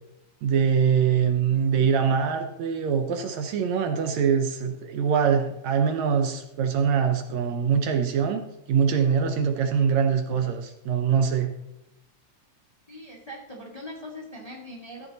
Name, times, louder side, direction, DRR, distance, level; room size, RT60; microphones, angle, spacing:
voice 1, 0.4-8.4 8.7-11.5, right 7 dB, 70° right, 6 dB, 1.9 m, -23 dB
voice 2, 12.9-15.1, left 1 dB, 15° left, -2 dB, 1.3 m, -41 dB
14.5 x 8.0 x 4.0 m, 0.88 s
omnidirectional pair, 3.5 m